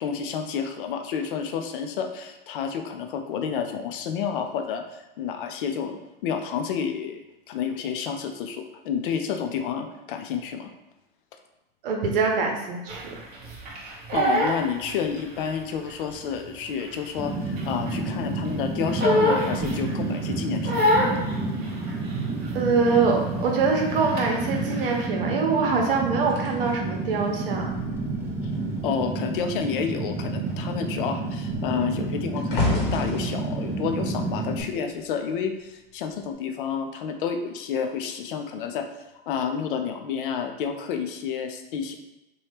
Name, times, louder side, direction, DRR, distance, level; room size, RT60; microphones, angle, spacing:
voice 1, 0.0-7.2 7.5-10.7 14.1-21.0 28.8-38.9 39.3-42.0, left 7 dB, 65° left, 6 dB, 0.5 m, -30 dB
voice 2, 11.8-13.2 22.5-27.7, right 4 dB, 65° right, 1 dB, 0.8 m, -24 dB
Crying sobbing, 12.9-15.5 15.9-18.1 18.5-20.2 20.6-22.6 22.9-23.2 23.4-25.1, equal, 30° right, 0.8 m, -26 dB
Fire, 17.2-34.6, right 3 dB, 10° right, 0.5 m, -30 dB
sound 1, 26.3-29.0 29.3-29.7 30.0-35.3 36.1-36.3, left 2 dB, 35° left, 1.0 m, -33 dB
2.9 x 2.3 x 3.3 m, 0.95 s
hypercardioid pair, 110°, 29 cm